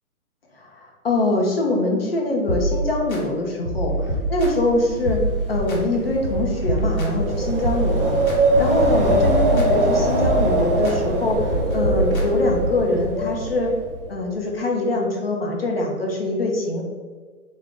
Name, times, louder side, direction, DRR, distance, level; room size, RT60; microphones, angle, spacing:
voice 1, 0.8-3.9 4.3-5.2 5.5-8.2 8.6-11.4 11.7-13.7 14.1-16.8, left 2 dB, 45° left, 0 dB, 0.5 m, -23 dB
sound 1, 2.5-3.2 3.6-4.7 5.1-5.8 6.2-8.4 8.8-9.9 10.2-11.0 11.4-12.8, right 1 dB, 70° left, 1.0 m, -26 dB
Wind, 4.0-14.1, right 1 dB, 40° right, 0.4 m, -23 dB
3.7 x 2.1 x 3.5 m, 1.5 s
hypercardioid pair, 170°, 44 cm